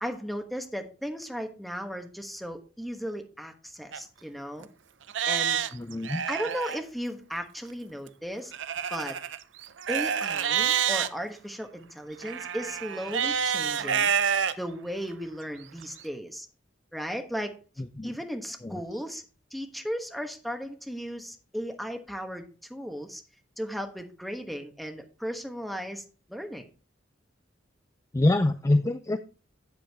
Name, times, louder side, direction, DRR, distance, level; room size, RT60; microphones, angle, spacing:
voice 1, 0.0-4.7 5.3-5.6 6.3-8.5 8.9-9.2 9.9-14.1 14.6-16.5 16.9-17.6 18.0-19.2 19.5-23.2 23.6-26.7, equal, ahead, 4 dB, 1.2 m, -36 dB
Livestock farm animals working animals, 3.9-4.0 4.6-4.7 5.1-6.8 8.5-11.1 12.2-14.5 15.1-15.2 15.8-15.9, right 8 dB, 75° right, 0.6 m, -28 dB
voice 2, 5.7-6.2 17.8-18.2 18.6-18.8 28.1-29.2, left 2 dB, 15° left, 10 dB, 0.4 m, -25 dB
8.6 x 8.2 x 3.5 m, 0.35 s
head